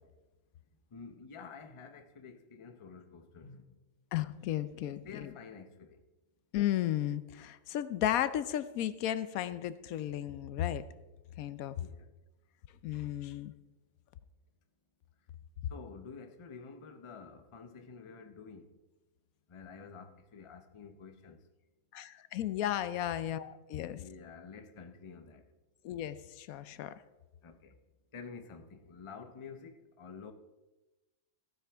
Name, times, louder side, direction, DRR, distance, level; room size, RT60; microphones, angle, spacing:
voice 1, 0.9-3.8 5.0-6.0 11.8-12.1 15.7-18.7 19.5-21.4 23.9-25.4 27.4-27.7 28.1-30.3, left 5 dB, 30° left, 0.6 m, -49 dB
voice 2, 4.1-5.3 6.5-10.8 11.4-11.8 12.8-13.5 21.9-24.0 25.8-26.9, left 12 dB, 80° left, 1.0 m, -34 dB
15.0 x 9.1 x 3.5 m
omnidirectional pair, 1.5 m